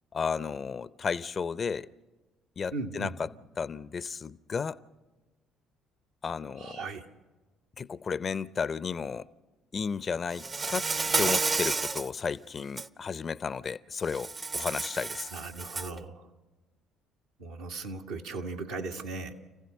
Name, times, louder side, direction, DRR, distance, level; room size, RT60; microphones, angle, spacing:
voice 1, 0.1-1.9 2.6-3.3 3.6-4.8 6.2-6.9 7.8-9.3 9.7-10.9 11.2-15.3, left 6 dB, 40° left, 0.6 m, -33 dB
voice 2, 2.7-3.1 6.6-7.0 15.3-16.3 17.4-19.3, right 3 dB, 80° right, 1.6 m, -37 dB
Insect, 10.4-12.1 12.6-12.9 14.1-16.0, right 4 dB, 35° right, 0.8 m, -30 dB
29.0 x 15.5 x 6.6 m
hypercardioid pair, 50°, 0 cm